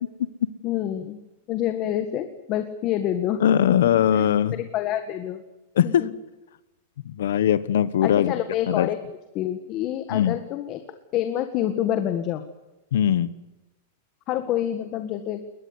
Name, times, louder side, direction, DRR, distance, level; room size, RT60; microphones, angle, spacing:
voice 1, 0.6-1.2 1.5-3.4 3.7-3.8 4.1-4.3 4.5-5.4 5.8-6.1 8.0-9.0 9.3-10.8 11.1-12.4 14.3-15.4, left 11 dB, 30° left, 9 dB, 1.7 m, -27 dB
voice 2, 3.4-4.6 5.8-6.1 7.1-8.3 8.7-8.9 10.1-10.4 12.9-13.3, left 10 dB, 80° left, 16 dB, 1.2 m, -20 dB
22.0 x 19.5 x 9.8 m, 1.0 s
supercardioid pair, 165°, 0 cm